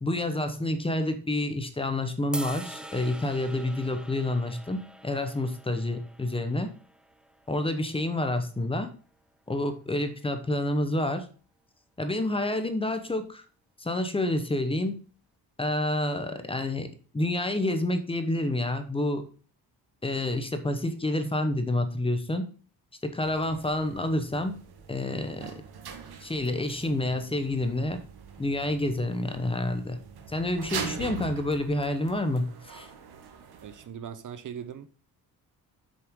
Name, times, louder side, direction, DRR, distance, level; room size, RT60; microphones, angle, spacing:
voice 1, 0.0-6.7 7.5-8.9 9.5-11.3 12.0-13.4 13.8-15.0 15.6-19.3 20.0-22.5 23.0-24.6 24.9-25.5 26.2-28.0 28.4-30.0 30.3-32.9, left 1 dB, 15° left, 1.0 m, -28 dB
sound 1, 2.3-8.6, right 1 dB, 5° right, 0.3 m, -44 dB
sound 2, 23.2-33.9, right 6 dB, 70° right, 1.7 m, -43 dB
voice 2, 33.6-34.9, right 8 dB, 50° right, 0.7 m, -40 dB
7.7 x 7.0 x 3.7 m
wide cardioid pair, 180°, 39 cm